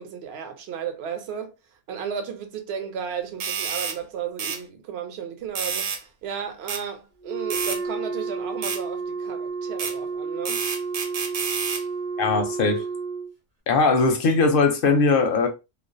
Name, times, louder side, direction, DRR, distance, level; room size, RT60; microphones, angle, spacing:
voice 1, 0.0-1.5 1.9-10.6, right 7 dB, 65° right, 0.8 m, -34 dB
sound 1, 3.4-4.0 4.4-4.6 5.6-6.0 6.7-6.8 7.5-7.8 8.6-8.8 9.8-9.9 10.5-11.8, right 6 dB, 90° right, 1.0 m, -29 dB
Wind instrument woodwind instrument, 7.2-13.3, right 4 dB, 30° right, 0.9 m, -31 dB
voice 2, 12.2-12.9 13.7-15.5, left 4 dB, 60° left, 0.6 m, -20 dB
2.4 x 2.0 x 2.5 m
omnidirectional pair, 1.3 m